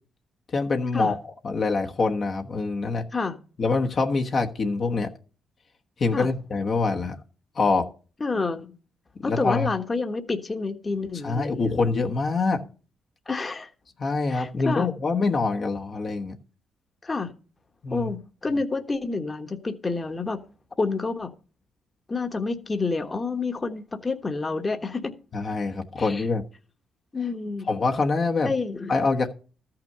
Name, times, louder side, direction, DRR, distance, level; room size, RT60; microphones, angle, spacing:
voice 1, 0.5-3.0 3.6-5.1 6.0-7.2 7.6-7.9 9.2-9.7 11.2-12.6 14.0-16.3 17.8-18.1 25.3-26.4 27.7-28.5 28.9-29.3, left 3 dB, 45° left, 2 dB, 1.1 m, -25 dB
voice 2, 8.2-8.7 9.2-11.8 13.3-13.7 14.3-14.9 17.0-17.3 17.9-20.4 20.8-21.3 22.1-25.1 26.0-26.2 27.1-27.7 28.4-29.0, left 3 dB, 25° left, 7 dB, 1.3 m, -28 dB
13.5 x 5.9 x 6.6 m, 0.38 s
cardioid pair, 90°, 0 cm